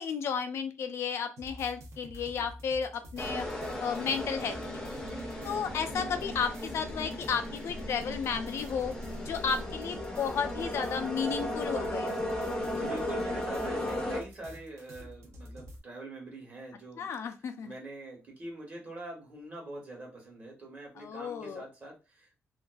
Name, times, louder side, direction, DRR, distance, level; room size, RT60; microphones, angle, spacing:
voice 1, 0.0-3.5 3.8-4.6 4.9-5.0 5.4-8.9 9.2-12.2 17.0-17.7 21.0-21.6, left 6 dB, 65° left, 7 dB, 0.4 m, -33 dB
sound 1, 1.4-15.8, equal, 75° right, 0.6 m, -48 dB
sound 2, 3.2-14.2, left 1 dB, 10° left, 0.5 m, -36 dB
voice 2, 5.1-5.5 12.5-17.1 17.6-22.4, right 2 dB, 35° right, -1 dB, 1.1 m, -44 dB
2.5 x 2.3 x 2.2 m, 0.29 s
wide cardioid pair, 150°, 5 cm